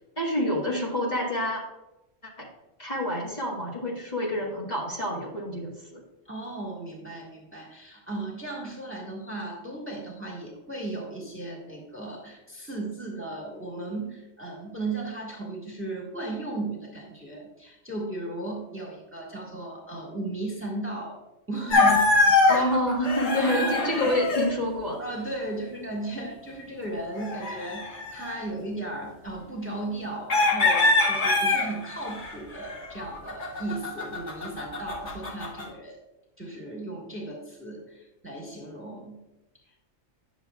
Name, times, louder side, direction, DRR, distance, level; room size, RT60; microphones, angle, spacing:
voice 1, 0.2-1.6 2.4-2.5 2.8-6.0 22.5-25.0, equal, 35° left, -5 dB, 1.6 m, -28 dB
voice 2, 6.2-21.2 21.5-22.2 22.5-22.8 23.3-24.1 25.0-36.0 36.4-39.2, right 2 dB, 10° right, -2 dB, 1.4 m, -36 dB
sound 1, 21.7-24.5 27.2-28.4 30.3-35.7, left 3 dB, 65° left, 1.7 m, -24 dB
9.9 x 6.9 x 2.3 m, 0.96 s
omnidirectional pair, 1.4 m